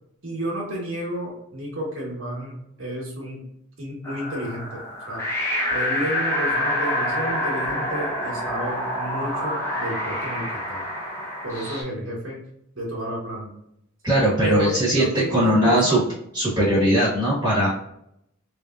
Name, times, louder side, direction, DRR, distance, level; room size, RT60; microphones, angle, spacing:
voice 1, 0.2-3.4 3.8-5.2 5.7-10.8 11.4-12.4 12.7-13.5 14.4-16.0, right 1 dB, 65° right, -3 dB, 1.2 m, -31 dB
sound 1, 4.0-11.8, left 1 dB, 10° left, 0.7 m, -27 dB
voice 2, 14.0-16.0 16.3-17.7, right 1 dB, 15° right, -9 dB, 1.2 m, -20 dB
3.4 x 2.7 x 2.4 m, 0.75 s
head